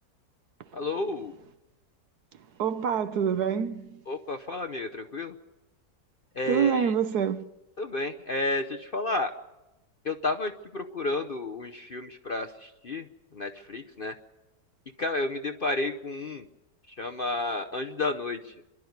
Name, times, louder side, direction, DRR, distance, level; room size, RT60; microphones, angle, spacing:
voice 1, 0.7-1.3 4.1-5.3 6.4-6.9 7.8-9.3 10.0-13.1 13.3-14.1 15.0-16.5 17.0-18.5, left 2 dB, 45° left, 0.7 m, -31 dB
voice 2, 2.3-4.0 6.5-7.5, right 7 dB, 65° right, 1.4 m, -27 dB
26.0 x 12.0 x 9.4 m
omnidirectional pair, 1.8 m